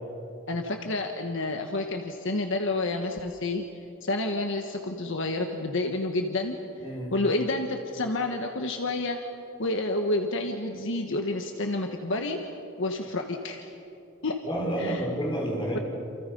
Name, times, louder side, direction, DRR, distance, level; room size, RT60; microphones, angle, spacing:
voice 1, 0.5-3.6 4.0-6.6 7.1-9.2 9.6-12.4 12.8-13.7 14.2-14.4 14.8-15.0, left 2 dB, 60° left, 4 dB, 1.5 m, -29 dB
voice 2, 6.8-7.1 14.4-15.8, right 1 dB, 25° left, -1 dB, 5.2 m, -29 dB
28.5 x 28.5 x 5.5 m, 2.7 s
head